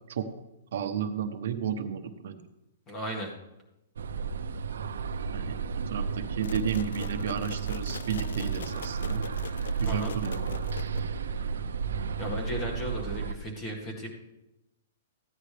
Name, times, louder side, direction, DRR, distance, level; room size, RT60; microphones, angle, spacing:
voice 1, 0.7-2.4 5.3-5.6 5.9-9.2 9.8-10.6, right 8 dB, 60° right, 8 dB, 0.9 m, -33 dB
voice 2, 2.9-3.3 9.8-10.1 12.2-14.1, equal, 20° left, 0 dB, 1.8 m, -35 dB
sound 1, 4.0-13.3, right 5 dB, 90° right, 0.6 m, -32 dB
sound 2, 6.4-11.3, left 6 dB, 85° left, 0.3 m, -44 dB
14.5 x 9.6 x 3.4 m, 0.93 s
hypercardioid pair, 165°, 0 cm